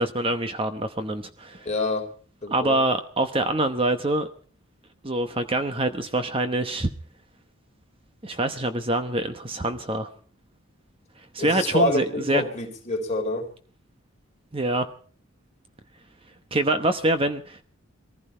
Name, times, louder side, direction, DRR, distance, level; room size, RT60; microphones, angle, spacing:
voice 1, 0.0-1.7 2.5-4.3 5.0-6.9 8.2-10.1 11.3-12.4 14.5-14.9 16.5-17.6, right 2 dB, 25° right, 0.9 m, -25 dB
voice 2, 1.6-2.1 2.4-2.8 11.4-13.5, left 2 dB, 35° left, 3.4 m, -26 dB
21.5 x 15.0 x 4.4 m
head